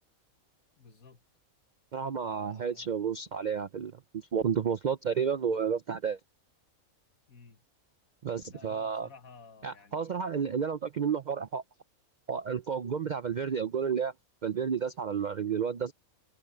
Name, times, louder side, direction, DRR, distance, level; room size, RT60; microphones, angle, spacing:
voice 1, 0.8-1.3 2.2-2.9 7.3-7.6 8.5-10.5, left 4 dB, 80° left, 2.1 m, -54 dB
voice 2, 1.9-6.2 8.2-9.1 9.6-11.6 12.3-14.1 14.4-15.9, right 7 dB, 60° right, 0.4 m, -31 dB
omnidirectional pair, 1.5 m